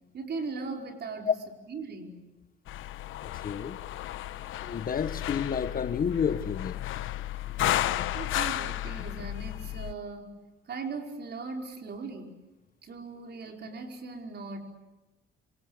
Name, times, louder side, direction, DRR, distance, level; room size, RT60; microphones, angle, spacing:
voice 1, 0.1-1.3 1.7-2.2 8.1-10.4 10.7-12.4 12.8-14.6, right 4 dB, 55° right, 5.0 m, -38 dB
sound 1, 2.7-9.9, left 14 dB, 85° left, 1.0 m, -33 dB
voice 2, 3.2-3.8 4.6-6.7, left 7 dB, 45° left, 1.4 m, -30 dB
28.0 x 26.0 x 8.0 m
cardioid pair, 90°, 20 cm